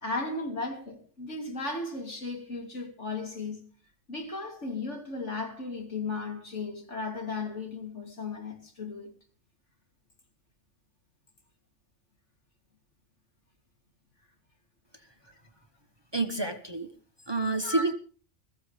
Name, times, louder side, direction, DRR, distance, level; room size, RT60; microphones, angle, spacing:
voice 1, 0.0-3.6 4.1-9.1 17.6-17.9, left 3 dB, 75° left, 3.4 m, -35 dB
voice 2, 16.1-16.9 17.3-17.9, right 2 dB, 20° right, 1.1 m, -28 dB
21.5 x 14.5 x 3.4 m
omnidirectional pair, 1.2 m